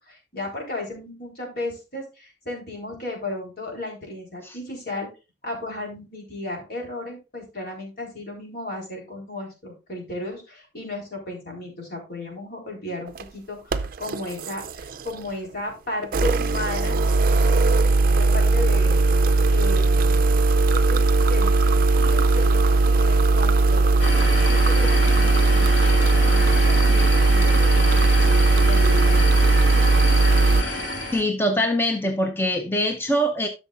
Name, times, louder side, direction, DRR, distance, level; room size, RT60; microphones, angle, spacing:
voice 1, 0.1-5.1 5.4-17.0 17.8-19.0 19.5-20.2 20.7-21.0 21.3-23.8 24.5-25.7 26.2-28.0 28.5-30.5, left 2 dB, 55° left, -1 dB, 3.9 m, -35 dB
sound 1, 13.1-13.2 13.7-15.3 16.0-30.6, right 3 dB, 50° right, 0.4 m, -18 dB
sound 2, 24.0-31.2, left 1 dB, 85° left, 2.5 m, -28 dB
voice 2, 31.1-33.5, equal, 10° left, 4 dB, 0.6 m, -23 dB
12.5 x 6.4 x 2.5 m, 0.29 s
head